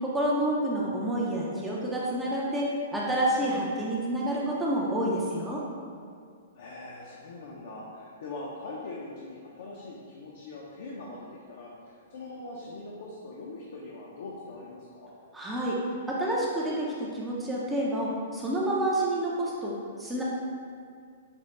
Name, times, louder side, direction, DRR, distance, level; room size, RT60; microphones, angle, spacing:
voice 1, 0.0-5.6 15.3-15.8 16.1-20.2, right 1 dB, 10° right, -5 dB, 0.4 m, -29 dB
voice 2, 6.5-15.1, left 2 dB, 60° left, -4 dB, 0.5 m, -42 dB
5.0 x 2.0 x 3.1 m, 2.2 s
hypercardioid pair, 150°, 0 cm